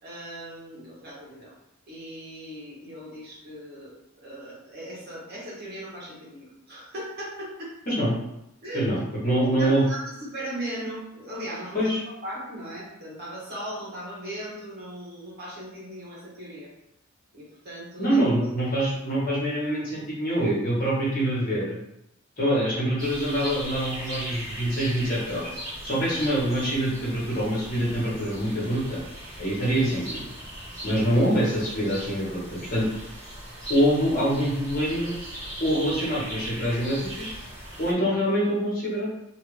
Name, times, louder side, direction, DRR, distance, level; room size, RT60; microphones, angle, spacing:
voice 1, 0.0-1.5 1.9-7.7 8.6-8.9 9.3-16.7 17.3-18.2, right 1 dB, 50° right, -7 dB, 1.3 m, -38 dB
voice 2, 8.7-9.8 11.7-12.0 18.0-21.8 22.4-25.5 25.8-29.0 29.4-30.2 30.8-32.9 33.7-35.1 35.6-37.3 37.8-39.1, right 1 dB, 45° left, -7 dB, 1.3 m, -25 dB
sound 1, 23.0-37.9, equal, 15° right, 1.3 m, -39 dB
2.9 x 2.7 x 3.2 m, 0.82 s
head